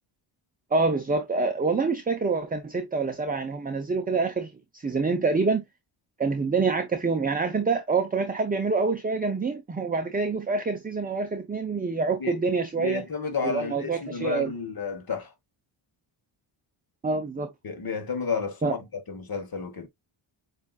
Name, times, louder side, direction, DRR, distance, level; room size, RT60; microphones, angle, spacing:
voice 1, 0.7-5.6 6.2-13.1 13.4-14.5 17.0-17.5 18.6-18.8, right 4 dB, 20° right, 0.6 m, -26 dB
voice 2, 12.8-15.3 17.6-18.8 19.1-19.9, left 5 dB, 45° left, 1.4 m, -31 dB
7.1 x 2.6 x 2.3 m
cardioid pair, 95°, 50 cm